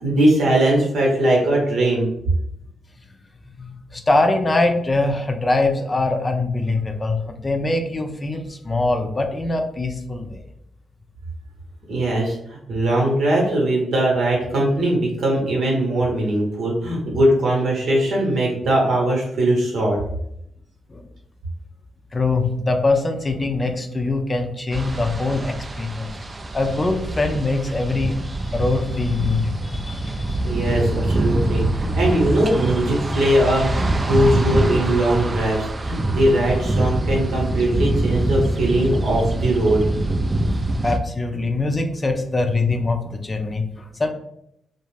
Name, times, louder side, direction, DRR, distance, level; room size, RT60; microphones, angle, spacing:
voice 1, 0.0-2.1 11.9-20.0 30.4-39.8, right 1 dB, 70° right, -2 dB, 0.9 m, -20 dB
voice 2, 3.6-10.4 20.9-21.0 22.1-26.1 26.5-28.2 28.4-30.4 40.7-44.1, left 2 dB, 35° left, 4 dB, 0.5 m, -23 dB
sound 1, 24.7-41.0, right 1 dB, 35° right, 0.4 m, -24 dB
2.3 x 2.0 x 3.2 m, 0.76 s
hypercardioid pair, 40°, 0 cm